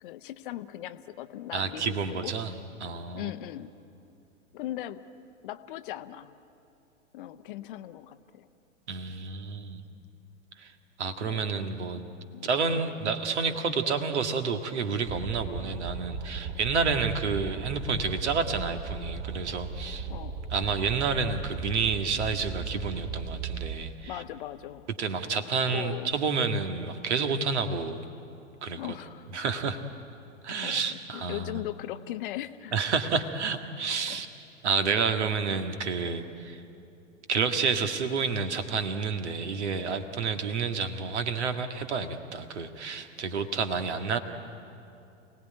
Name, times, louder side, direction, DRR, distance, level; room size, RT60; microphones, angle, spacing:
voice 1, 0.0-2.4 3.1-3.7 4.5-5.1 5.4-6.3 7.1-8.5 11.3-11.5 12.0-12.6 20.1-20.4 24.0-24.9 25.7-26.1 28.8-29.3 30.6-32.7 33.9-34.2, left 13 dB, 40° left, 12 dB, 0.9 m, -39 dB
voice 2, 1.5-2.5 2.8-3.3 8.9-9.8 10.6-10.7 11.0-12.0 12.4-20.1 20.5-24.2 25.0-28.0 28.6-29.0 29.3-29.8 30.4-31.6 32.7-34.3 34.6-36.6 37.3-44.2, right 5 dB, 60° right, 7 dB, 1.9 m, -29 dB
sound 1, 15.1-23.9, right 5 dB, 35° right, 2.4 m, -37 dB
28.0 x 18.5 x 9.6 m, 2.7 s
figure-of-eight pair, 100°, 39 cm